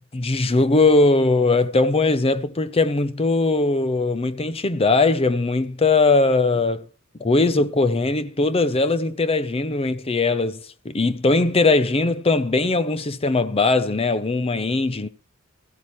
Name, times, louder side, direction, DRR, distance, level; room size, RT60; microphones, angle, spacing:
voice 1, 0.0-6.9 7.2-15.1, left 3 dB, 25° left, 0.6 m, -20 dB
16.5 x 15.0 x 3.1 m
head